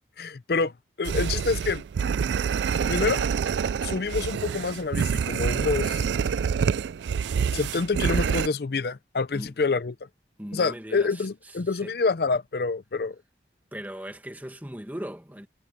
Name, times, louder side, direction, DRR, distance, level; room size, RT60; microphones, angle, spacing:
voice 1, 0.2-0.7 1.0-1.8 2.8-3.3 3.8-6.1 7.5-9.9 10.5-13.2, left 4 dB, 60° left, 0.5 m, -27 dB
sound 1, 1.1-8.5, right 6 dB, 80° right, 0.3 m, -26 dB
voice 2, 10.4-12.0 13.7-15.5, equal, 10° right, 1.8 m, -39 dB
head